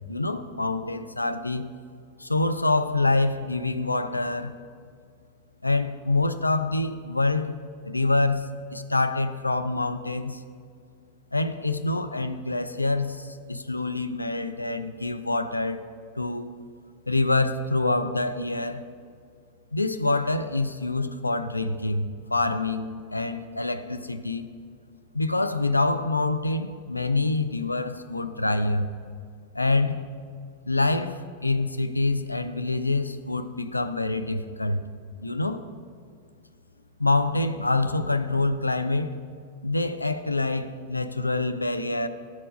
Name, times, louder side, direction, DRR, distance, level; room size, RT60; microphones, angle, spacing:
voice 1, 0.1-1.7 2.2-4.5 5.6-7.6 7.8-10.4 11.3-15.8 16.2-16.5 17.1-18.8 19.7-24.5 25.1-28.9 29.5-30.1 30.7-34.8 35.2-35.6 37.0-39.2 39.6-42.1, left 2 dB, 85° left, 0.3 m, -26 dB
11.5 x 4.5 x 5.0 m
figure-of-eight pair, 90°, 0 cm